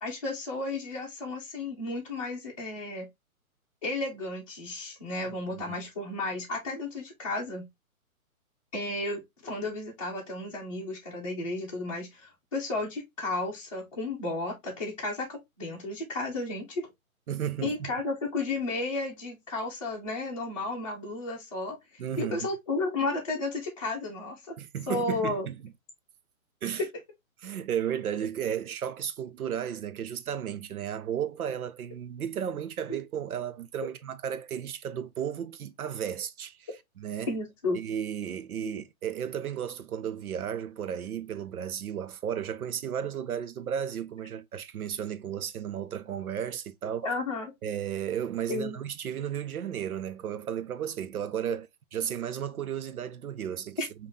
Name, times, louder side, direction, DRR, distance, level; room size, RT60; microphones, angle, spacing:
voice 1, 0.0-3.1 3.8-7.7 8.7-16.9 17.6-21.8 22.2-24.5 24.9-25.5 26.8-26.9 32.9-33.0 37.3-37.8 47.0-47.5 48.5-48.8, left 2 dB, 25° left, 0.7 m, -33 dB
voice 2, 17.3-17.9 22.0-22.5 24.6-25.7 26.6-26.8 27.4-36.7 37.0-37.3 37.7-47.0 47.6-51.7 51.9-53.8, right 9 dB, 90° right, 0.7 m, -34 dB
5.3 x 2.6 x 2.6 m
hypercardioid pair, 175°, 43 cm